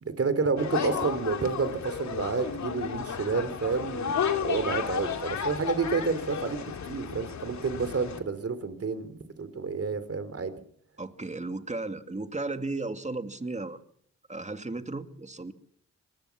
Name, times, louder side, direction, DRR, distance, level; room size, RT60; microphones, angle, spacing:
voice 1, 0.0-10.5, right 4 dB, 55° right, 13 dB, 3.5 m, -30 dB
sound 1, 0.6-8.2, left 7 dB, 70° left, 2.6 m, -33 dB
voice 2, 11.0-13.8 14.3-15.5, right 2 dB, 25° right, 8 dB, 2.4 m, -35 dB
25.5 x 19.5 x 6.1 m, 0.64 s
cardioid pair, 55°, 29 cm